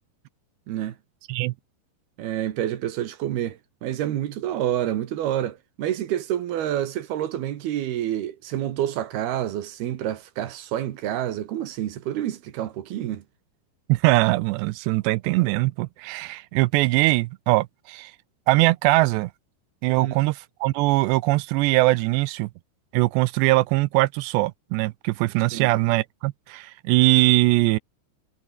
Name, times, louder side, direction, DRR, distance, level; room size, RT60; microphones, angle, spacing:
voice 1, 2.2-13.2 20.0-20.1 25.5-25.7, right 11 dB, 65° right, 3.0 m, -28 dB
voice 2, 13.9-18.1 18.5-19.3 19.8-22.5 22.9-27.8, right 20 dB, 85° right, 2.5 m, -21 dB
omnidirectional pair, 5.6 m